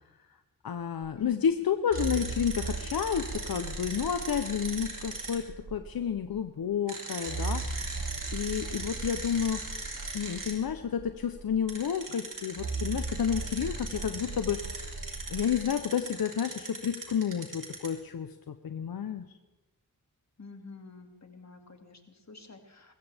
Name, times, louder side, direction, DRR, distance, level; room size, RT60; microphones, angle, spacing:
voice 1, 0.6-5.4 5.7-9.8 10.1-14.9 15.3-19.3, left 8 dB, 80° left, 9 dB, 0.7 m, -31 dB
sound 1, 1.0-1.1 1.9-6.4 7.3-11.9 12.6-15.6, right 3 dB, 80° right, 1.8 m, -38 dB
sound 2, 1.9-5.4 6.9-10.5 11.7-17.9, right 3 dB, 60° right, 3.8 m, -39 dB
voice 2, 20.4-22.9, left 3 dB, 50° left, 4 dB, 2.3 m, -48 dB
21.5 x 15.5 x 3.5 m, 1.1 s
cardioid pair, 55°, 36 cm